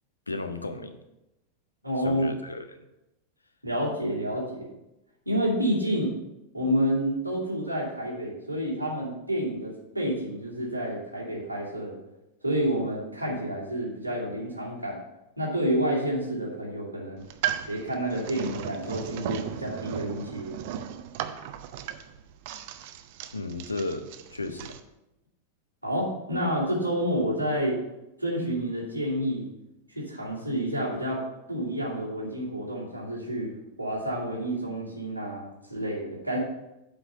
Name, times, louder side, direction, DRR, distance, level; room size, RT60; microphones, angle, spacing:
voice 1, 0.3-1.0 2.0-2.8 23.3-24.8, left 2 dB, 80° left, 9 dB, 0.7 m, -34 dB
voice 2, 1.8-2.3 3.6-4.7 5.3-6.1 6.5-12.0 12.4-15.0 15.4-17.2 17.7-20.6 25.8-27.8 28.2-29.5 29.9-31.2 31.5-33.5 33.8-36.4, equal, 90° right, -6 dB, 2.6 m, -29 dB
sound 1, 17.2-24.8, right 10 dB, 50° right, 0.6 m, -36 dB
7.7 x 4.8 x 6.4 m, 0.93 s
figure-of-eight pair, 90°, 0 cm